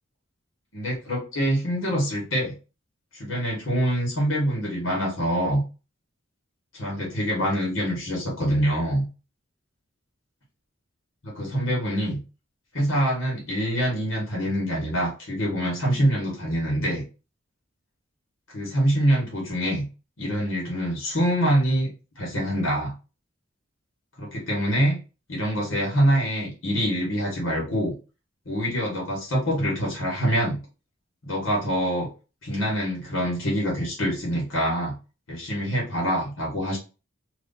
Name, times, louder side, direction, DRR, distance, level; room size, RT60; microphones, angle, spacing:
voice 1, 0.7-2.5 3.1-5.6 6.7-9.0 11.2-12.2 12.7-17.0 18.5-19.8 20.2-21.9 22.2-22.9 24.2-25.0 25.3-27.9 28.4-30.6 31.2-32.1 32.4-34.9 35.3-36.8, equal, 80° left, -2 dB, 1.6 m, -25 dB
2.9 x 2.7 x 3.8 m, 0.32 s
head